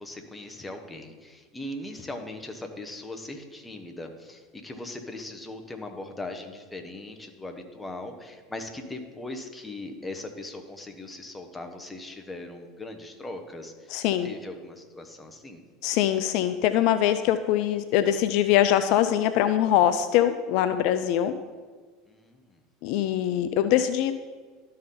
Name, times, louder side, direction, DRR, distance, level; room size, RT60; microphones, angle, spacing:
voice 1, 0.0-15.6 22.1-22.6, left 2 dB, 15° left, 4 dB, 1.1 m, -39 dB
voice 2, 13.9-14.3 15.8-21.3 22.8-24.1, left 11 dB, 60° left, 11 dB, 0.4 m, -23 dB
12.5 x 4.2 x 3.8 m, 1.5 s
hypercardioid pair, 90°, 0 cm